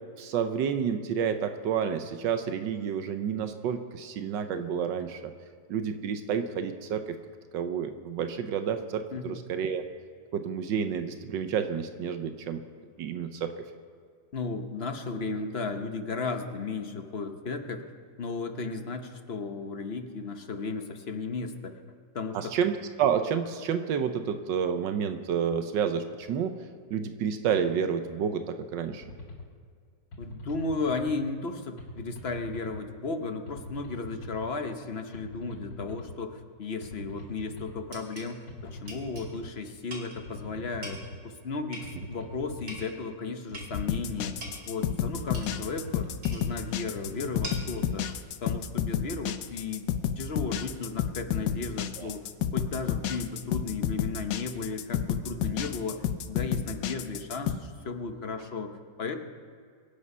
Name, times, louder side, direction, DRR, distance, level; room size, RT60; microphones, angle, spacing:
voice 1, 0.2-5.3 5.7-7.2 7.5-9.8 10.3-12.6 13.0-13.5 22.3-22.7 23.0-26.5 26.9-29.0 52.0-52.1, right 7 dB, 85° right, 8 dB, 1.5 m, -29 dB
voice 2, 14.3-17.8 18.2-21.7 22.1-22.5 30.2-41.0 41.2-44.3 44.7-48.1 48.4-49.9 50.2-52.2 52.5-59.2, left 4 dB, 40° left, 6 dB, 1.1 m, -35 dB
sound 1, 29.0-29.5 30.1-31.1 31.8-32.8 33.5-34.5 35.1-36.2 36.8-37.8 38.5-39.5 40.2-41.2 41.8-42.9 43.5-44.5 45.2-46.2 46.9-47.9, left 1 dB, 85° left, 2.7 m, -43 dB
sound 2, 37.2-37.3 37.9-38.3 38.9-39.3 39.9-40.2 40.8-41.1 41.7-42.2 42.7-43.0 43.5-43.8 44.4-44.7 45.3-45.6 46.2-46.5 47.4-47.8, right 1 dB, 60° right, 3.0 m, -42 dB
sound 3, 43.7-57.5, left 9 dB, 70° left, 1.2 m, -31 dB
24.5 x 8.5 x 5.5 m, 2.1 s
omnidirectional pair, 1.9 m